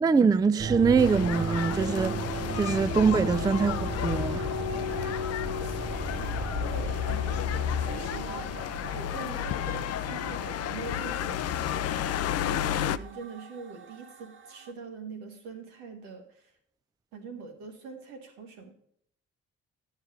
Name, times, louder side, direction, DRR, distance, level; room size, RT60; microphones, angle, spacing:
voice 1, 0.0-2.2 2.5-4.4, right 5 dB, 10° right, 0.3 m, -24 dB
sound 1, 0.6-14.7, right 2 dB, 40° right, 0.9 m, -36 dB
sound 2, 1.0-13.0, left 11 dB, 50° left, 0.5 m, -32 dB
voice 2, 5.6-7.3 7.6-16.5 17.1-18.7, right 4 dB, 80° right, 1.6 m, -44 dB
9.7 x 6.4 x 5.0 m
hypercardioid pair, 55°, 32 cm